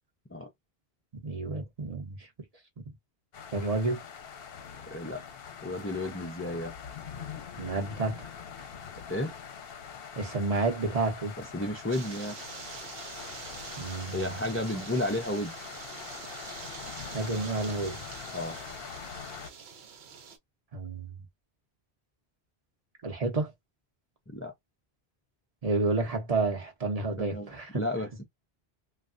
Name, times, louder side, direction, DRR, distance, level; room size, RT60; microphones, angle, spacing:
voice 1, 1.2-2.3 3.5-4.0 7.6-8.2 10.2-11.3 13.8-14.4 14.7-14.8 17.1-18.0 20.7-21.1 23.0-23.5 25.6-27.8, right 3 dB, 40° right, 0.8 m, -30 dB
sound 1, 3.3-19.5, left 7 dB, 65° left, 0.8 m, -43 dB
voice 2, 4.9-5.2 5.6-6.7 9.1-9.3 11.5-12.4 14.1-15.5 18.3-18.6 24.3-24.5 27.2-27.5 27.7-28.2, left 1 dB, 20° left, 0.3 m, -32 dB
sound 2, 11.9-20.4, right 6 dB, 70° right, 1.0 m, -45 dB
3.2 x 2.4 x 2.5 m
omnidirectional pair, 1.1 m